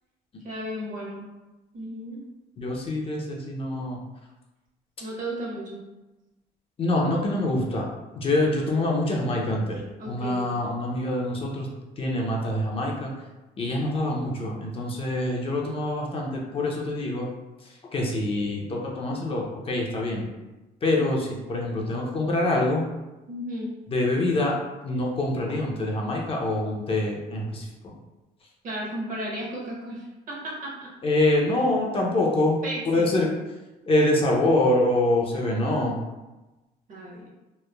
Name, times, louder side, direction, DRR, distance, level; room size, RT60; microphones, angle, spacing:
voice 1, 0.4-1.2 1.7-2.2 5.0-5.8 10.0-10.5 23.3-23.7 28.6-30.9 31.5-31.7 32.6-33.1 35.3-36.0 36.9-37.3, right 1 dB, 50° right, -3 dB, 0.8 m, -35 dB
voice 2, 2.6-4.0 6.8-7.9 8.2-9.8 10.1-11.7 12.0-13.1 13.6-17.3 17.9-20.3 20.8-22.8 23.9-24.5 24.8-27.6 31.0-32.6 32.9-33.3 33.9-36.0, left 1 dB, 35° left, -1 dB, 0.5 m, -25 dB
3.0 x 2.1 x 2.2 m, 1.1 s
cardioid pair, 110°, 17 cm